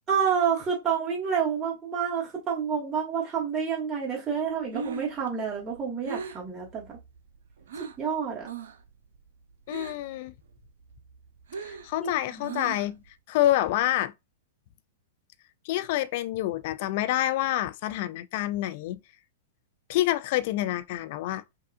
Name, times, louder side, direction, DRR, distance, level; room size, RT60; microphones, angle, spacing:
voice 1, 0.1-7.0 8.0-8.5 12.0-12.6, right 7 dB, 20° right, 1.9 m, -29 dB
Breathing, 4.5-8.1 8.4-8.9 9.1-10.2 10.5-13.1, right 5 dB, 65° right, 0.6 m, -39 dB
voice 2, 9.7-10.3 11.6-14.1 15.6-19.0 19.9-21.4, left 14 dB, 50° left, 0.5 m, -27 dB
5.5 x 2.4 x 2.5 m
figure-of-eight pair, 105°, 0 cm